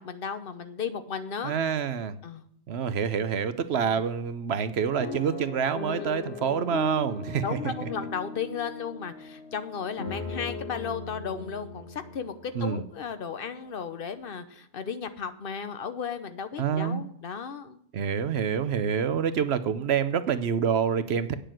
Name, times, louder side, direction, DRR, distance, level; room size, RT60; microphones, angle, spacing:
voice 1, 0.0-1.5 2.2-2.4 3.8-4.0 6.0-6.1 7.4-17.8, left 6 dB, 60° left, 10 dB, 1.1 m, -35 dB
voice 2, 1.4-2.2 2.7-7.9 12.5-12.8 16.6-17.1 17.9-21.3, right 7 dB, 80° right, 12 dB, 1.0 m, -27 dB
sound 1, 5.0-13.1 13.7-13.8 14.1-14.3, left 3 dB, 80° left, 1.6 m, -38 dB
9.0 x 6.7 x 7.7 m, 0.67 s
omnidirectional pair, 1.1 m